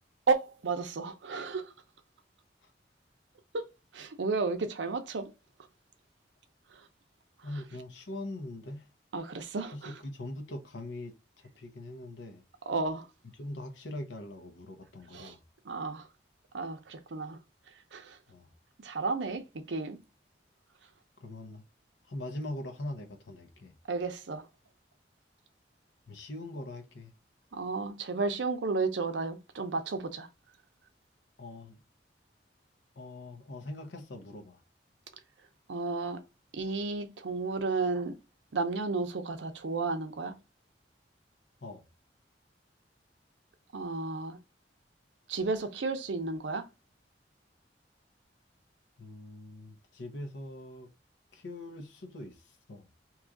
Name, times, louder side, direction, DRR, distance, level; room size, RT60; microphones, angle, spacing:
voice 1, 0.3-1.7 3.5-3.7 3.9-5.3 6.7-6.9 9.1-9.9 12.7-13.1 15.1-15.3 15.6-16.1 16.5-17.4 17.9-18.2 18.8-20.0 23.9-24.5 27.5-30.3 35.7-36.2 36.5-38.2 38.5-40.4 43.7-44.4 45.3-46.7, right 3 dB, 90° right, 0.6 m, -32 dB
voice 2, 7.4-8.9 9.7-12.4 13.4-15.4 18.3-18.5 21.2-21.6 22.1-23.7 26.1-27.1 31.4-31.8 33.0-34.6 41.6-41.8 49.0-50.9 51.3-52.9, left 1 dB, 85° left, 0.7 m, -42 dB
2.9 x 2.4 x 3.6 m
head